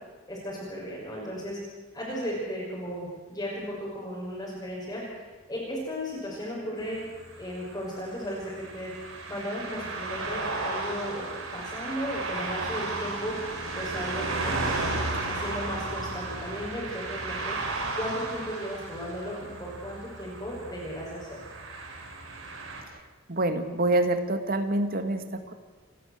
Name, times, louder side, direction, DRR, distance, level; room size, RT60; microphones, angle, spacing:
voice 1, 0.3-1.6 1.9-7.0 7.4-8.9 9.3-11.2 11.5-13.3 13.8-14.8 15.2-17.6 18.0-21.4, equal, 15° left, -7 dB, 6.0 m, -35 dB
sound 1, 6.8-22.8, right 3 dB, 85° right, 4.5 m, -34 dB
voice 2, 23.3-25.5, right 1 dB, 45° right, 8 dB, 1.9 m, -26 dB
29.5 x 13.0 x 8.1 m, 1.4 s
head